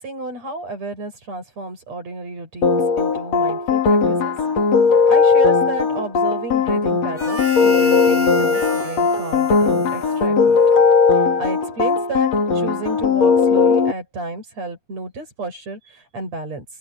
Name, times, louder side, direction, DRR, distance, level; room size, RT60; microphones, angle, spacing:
voice 1, 0.0-4.3 5.1-10.6 11.1-16.6, right 3 dB, 55° right, 8.5 m, -31 dB
sound 1, 2.6-13.9, left 5 dB, 55° left, 4.5 m, -17 dB
Harmonica, 7.1-10.9, equal, 5° right, 7.3 m, -31 dB
open air
omnidirectional pair, 3.6 m